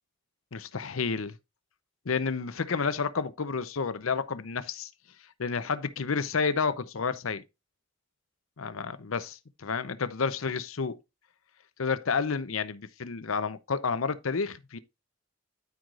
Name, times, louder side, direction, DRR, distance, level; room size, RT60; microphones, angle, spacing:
voice 1, 0.5-1.4 2.1-4.9 5.4-7.4 8.6-11.0 11.8-14.8, left 5 dB, 80° left, 0.7 m, -30 dB
13.0 x 4.8 x 2.5 m
head